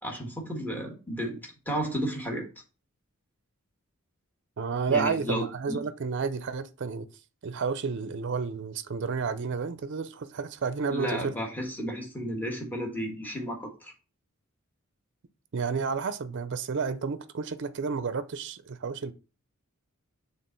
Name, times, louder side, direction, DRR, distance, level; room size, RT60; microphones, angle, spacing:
voice 1, 0.0-1.4 1.7-2.4 4.9-5.8 10.9-13.9, equal, 10° left, 1.4 m, -33 dB
voice 2, 4.6-7.1 7.4-11.3 15.5-19.1, right 5 dB, 55° right, 0.5 m, -31 dB
6.6 x 3.5 x 4.3 m
head